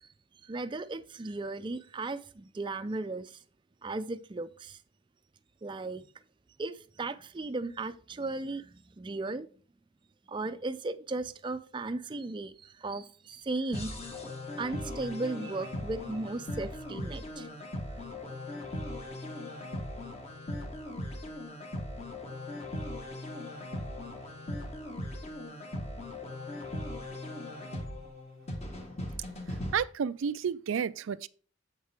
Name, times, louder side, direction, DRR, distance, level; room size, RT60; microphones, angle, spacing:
voice 1, 0.5-3.3 3.8-4.8 5.6-6.1 6.6-9.5 10.3-13.9 14.6-17.5, right 2 dB, 25° right, 0.4 m, -36 dB
sound 1, 13.7-29.7, left 1 dB, 35° left, 1.3 m, -39 dB
voice 2, 29.7-31.3, right 7 dB, 85° right, 0.4 m, -31 dB
8.2 x 6.5 x 3.4 m
head